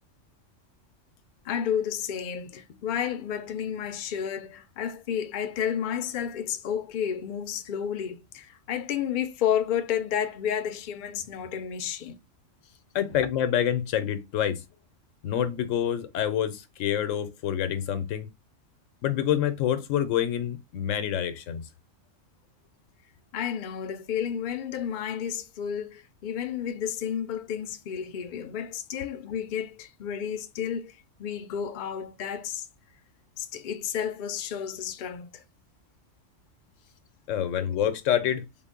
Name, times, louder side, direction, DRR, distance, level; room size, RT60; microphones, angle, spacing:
voice 1, 1.4-12.2 23.3-32.7 33.4-35.4 37.6-37.7, left 8 dB, 65° left, 0.5 m, -31 dB
voice 2, 12.9-14.6 15.2-18.3 19.0-21.6 37.3-38.4, left 10 dB, 85° left, 1.0 m, -27 dB
3.8 x 2.1 x 3.6 m
omnidirectional pair, 1.3 m